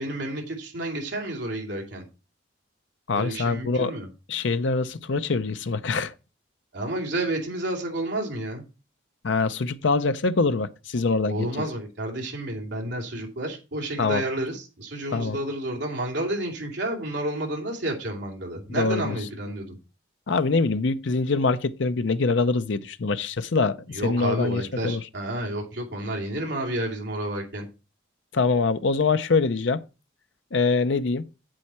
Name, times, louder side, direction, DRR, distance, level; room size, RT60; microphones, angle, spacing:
voice 1, 0.0-2.0 3.1-4.1 6.7-8.6 11.3-19.8 23.9-27.7, right 1 dB, 65° right, 2.8 m, -30 dB
voice 2, 3.1-3.9 4.3-6.1 9.2-11.6 14.0-14.2 15.1-15.4 18.7-19.2 20.3-25.0 28.3-29.8 30.5-31.2, left 4 dB, 70° left, 0.6 m, -24 dB
8.3 x 7.8 x 4.3 m
head